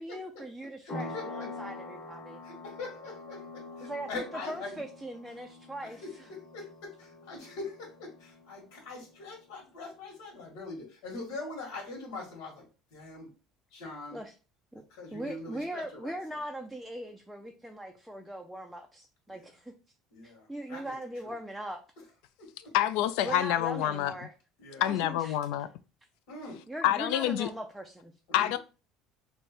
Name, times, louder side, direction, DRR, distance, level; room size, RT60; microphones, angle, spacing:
voice 1, 0.0-2.4 3.8-6.3 14.1-14.3 14.7-14.8 15.1-19.7 20.2-21.8 23.2-24.3 24.8-25.4 26.7-28.1, right 1 dB, ahead, 0.3 m, -40 dB
voice 2, 0.8-1.5 2.4-4.7 5.8-12.6 12.9-13.3 13.7-14.2 14.9-16.1 19.3-19.5 20.1-20.9 21.2-21.3 22.4-22.7 24.6-24.9 26.3-26.6 28.3-28.6, left 3 dB, 90° left, 1.7 m, -43 dB
sound 1, 0.9-9.2, left 2 dB, 30° left, 1.1 m, -45 dB
voice 3, 22.7-24.1 24.8-25.7 26.8-27.5 28.3-28.6, left 12 dB, 75° left, 0.4 m, -27 dB
3.2 x 2.7 x 4.3 m
cardioid pair, 170°, 0 cm